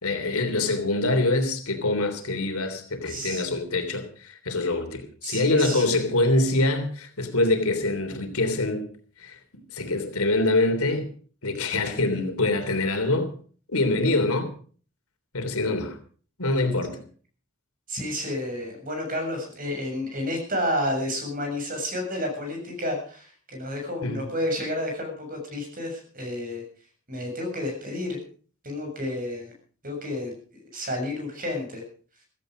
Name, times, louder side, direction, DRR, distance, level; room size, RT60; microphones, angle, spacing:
voice 1, 0.0-8.9 9.2-9.4 9.7-11.1 11.4-13.3 13.7-14.5 15.3-16.0 16.4-17.0 24.0-24.3, left 2 dB, 80° left, 3.3 m, -25 dB
voice 2, 3.1-3.4 5.2-6.1 17.9-26.6 27.1-28.2 28.6-29.5 29.8-30.3 30.7-31.8, left 1 dB, 40° right, 7.2 m, -30 dB
16.0 x 15.0 x 5.1 m
head